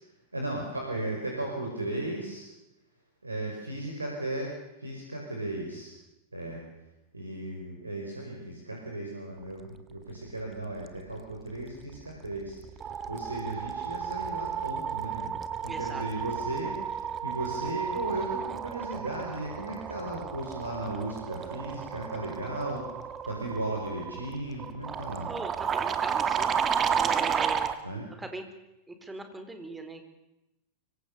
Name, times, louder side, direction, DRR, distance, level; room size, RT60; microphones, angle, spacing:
voice 1, 0.3-2.5 3.2-4.5 4.8-5.9 6.3-6.6 7.1-15.4 15.6-22.8 23.2-25.3 27.8-28.1, right 2 dB, 80° right, 0 dB, 5.6 m, -36 dB
sound 1, 11.9-12.2 12.5-27.8, right 7 dB, 25° right, 2.1 m, -32 dB
voice 2, 15.7-16.2 25.2-27.7 28.2-28.5 28.9-30.1, right 2 dB, 10° right, 7 dB, 4.2 m, -41 dB
25.0 x 24.5 x 7.1 m, 0.95 s
figure-of-eight pair, 90°, 0 cm